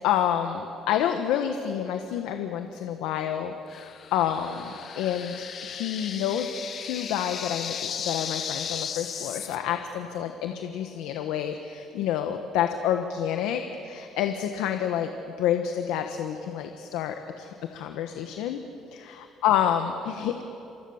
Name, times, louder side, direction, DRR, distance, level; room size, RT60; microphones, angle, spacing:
voice 1, 0.0-6.5 6.8-15.1 15.4-18.6 19.4-20.4, left 10 dB, 85° left, 6 dB, 1.3 m, -28 dB
sound 1, 3.7-9.6, left 7 dB, 50° left, 1.5 m, -36 dB
28.0 x 24.0 x 7.3 m, 3.0 s
cardioid pair, 100°, 0 cm